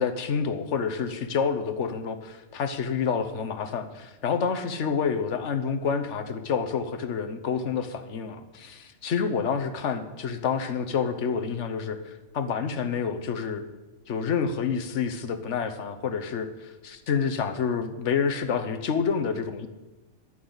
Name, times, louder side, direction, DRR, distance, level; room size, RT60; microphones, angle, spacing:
voice 1, 0.0-13.6 14.1-19.7, left 6 dB, 60° left, 8 dB, 1.3 m, -28 dB
15.0 x 11.0 x 4.0 m, 1.1 s
omnidirectional pair, 1.4 m